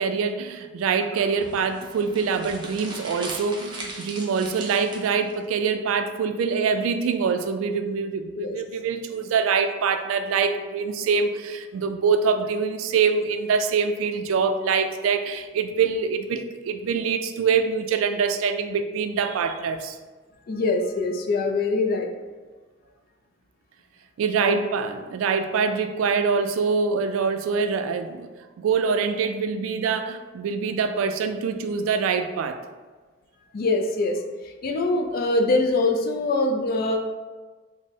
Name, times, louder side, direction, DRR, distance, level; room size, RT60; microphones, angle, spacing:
voice 1, 0.0-20.0 24.2-28.3 28.6-32.6, right 5 dB, 85° right, 9 dB, 0.3 m, -24 dB
sound 1, 1.4-5.3, right 2 dB, 25° right, 0.5 m, -39 dB
voice 2, 20.5-22.1 24.4-24.6 33.5-37.0, left 2 dB, 45° left, 4 dB, 0.3 m, -24 dB
4.0 x 2.0 x 3.4 m, 1.3 s
head